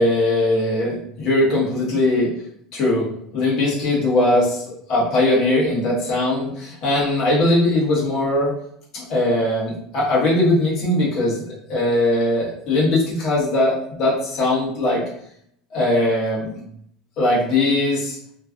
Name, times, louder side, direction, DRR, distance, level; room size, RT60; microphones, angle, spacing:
voice 1, 0.0-2.3 2.7-3.1 3.3-4.6 4.9-8.5 8.9-15.0 15.7-16.6 17.2-18.2, left 1 dB, 40° left, -5 dB, 1.3 m, -20 dB
3.0 x 2.4 x 2.4 m, 0.68 s
cardioid pair, 165°, 0 cm